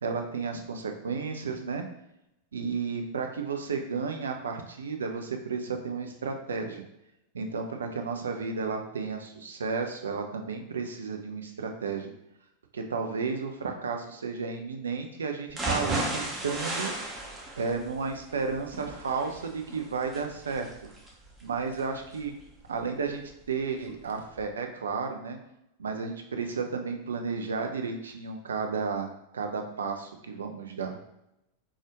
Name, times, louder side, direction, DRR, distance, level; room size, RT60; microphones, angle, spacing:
voice 1, 0.0-1.8 2.5-6.8 7.3-12.1 12.7-16.9 17.6-20.7 21.4-22.3 22.7-25.4 25.8-31.0, right 5 dB, 70° right, 4 dB, 0.5 m, -33 dB
sound 1, 15.5-23.5 23.9-24.0 24.4-24.5, right 2 dB, 15° right, 0.7 m, -35 dB
3.9 x 2.4 x 3.0 m, 0.85 s
figure-of-eight pair, 90°, 0 cm